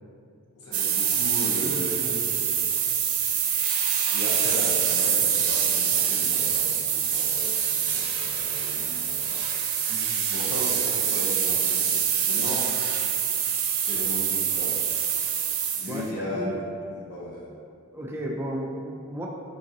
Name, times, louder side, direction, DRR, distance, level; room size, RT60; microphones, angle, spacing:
voice 1, 0.6-2.5 4.1-9.4 10.3-12.7 13.8-14.8 15.8-16.6 16.8-17.5, left 1 dB, 85° left, -6 dB, 0.8 m, -36 dB
sound 1, 0.7-16.0, right 8 dB, 70° right, 0.5 m, -25 dB
voice 2, 1.4-2.2 9.9-10.2 15.9-16.6 17.9-19.3, equal, 10° right, -2 dB, 0.3 m, -34 dB
3.7 x 3.7 x 2.7 m, 2.4 s
head